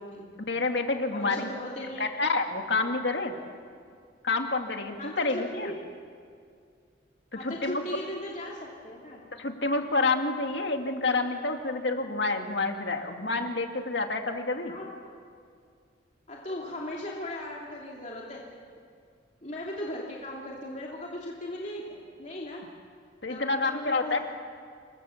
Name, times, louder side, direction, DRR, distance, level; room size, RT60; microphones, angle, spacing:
voice 1, 0.5-1.5 2.0-3.4 4.2-5.7 7.3-7.8 9.4-14.7 23.2-24.2, left 3 dB, 65° left, 4 dB, 2.1 m, -28 dB
voice 2, 1.1-2.1 2.8-2.9 5.0-5.8 7.4-9.2 14.7-15.1 16.3-18.4 19.4-22.6 23.3-24.2, left 1 dB, 35° left, -3 dB, 2.8 m, -38 dB
27.5 x 23.5 x 7.2 m, 2.2 s
head